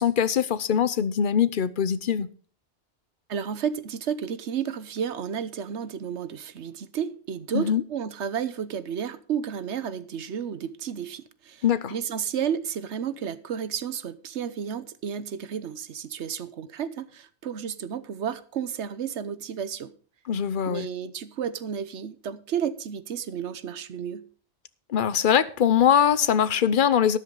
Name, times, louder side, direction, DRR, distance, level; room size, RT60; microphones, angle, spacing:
voice 1, 0.0-2.3 7.5-7.8 11.6-11.9 20.3-20.9 24.9-27.2, left 8 dB, 50° left, 0.9 m, -22 dB
voice 2, 3.3-11.6 11.9-19.9 20.7-24.3, right 8 dB, 80° right, 1.2 m, -32 dB
13.0 x 11.0 x 3.8 m
omnidirectional pair, 1.1 m